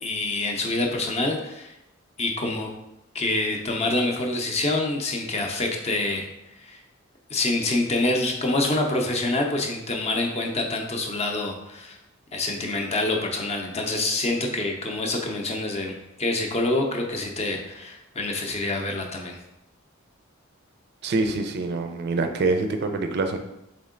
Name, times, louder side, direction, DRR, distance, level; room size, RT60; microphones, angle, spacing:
voice 1, 0.0-1.7 2.2-2.7 3.1-6.3 6.6-6.8 7.3-12.0 12.3-15.9 16.2-19.4, left 2 dB, 30° left, 1 dB, 0.6 m, -26 dB
voice 2, 21.0-23.4, right 3 dB, 55° right, 6 dB, 0.4 m, -25 dB
3.6 x 3.2 x 3.7 m, 0.88 s
head